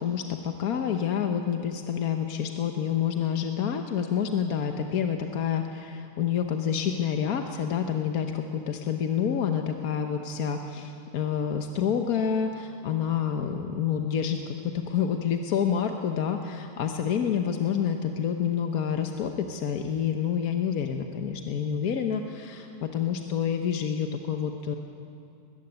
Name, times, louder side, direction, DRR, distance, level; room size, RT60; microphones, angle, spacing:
voice 1, 0.0-24.8, left 8 dB, 75° left, 5 dB, 1.5 m, -28 dB
20.5 x 15.0 x 9.7 m, 2.5 s
omnidirectional pair, 1.6 m